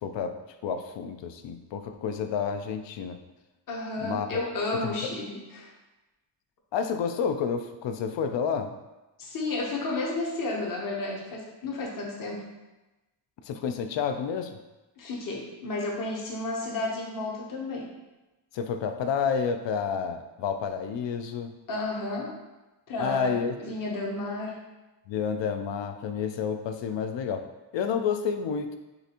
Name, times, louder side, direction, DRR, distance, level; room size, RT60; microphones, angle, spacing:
voice 1, 0.0-0.4 0.6-3.2 4.0-4.5 4.8-5.1 6.7-8.7 13.4-14.6 18.5-21.5 23.0-23.8 25.1-27.4 27.7-28.8, left 6 dB, 65° left, 8 dB, 0.5 m, -30 dB
voice 2, 3.7-5.7 9.2-12.5 15.0-17.9 21.7-22.3 22.9-24.6, left 2 dB, 45° left, -2 dB, 0.9 m, -32 dB
6.6 x 2.5 x 2.9 m, 1.1 s
wide cardioid pair, 145°, 48 cm